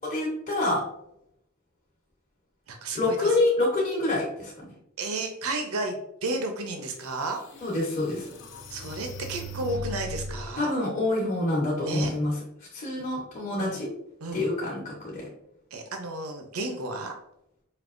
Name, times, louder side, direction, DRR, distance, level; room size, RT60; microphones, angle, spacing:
voice 1, 0.1-0.8 2.9-4.5 7.6-8.3 10.6-12.4 12.7-13.9 14.3-15.3, left 2 dB, 35° left, -5 dB, 1.1 m, -26 dB
voice 2, 2.7-3.4 5.0-7.4 8.7-10.7 11.8-12.1 13.6-13.8 14.2-14.4 15.7-17.1, right 2 dB, 80° right, 4 dB, 0.7 m, -32 dB
sound 1, 6.7-6.8 7.4-10.5, left 1 dB, 60° left, 0.5 m, -39 dB
5.3 x 2.8 x 2.5 m, 0.77 s
head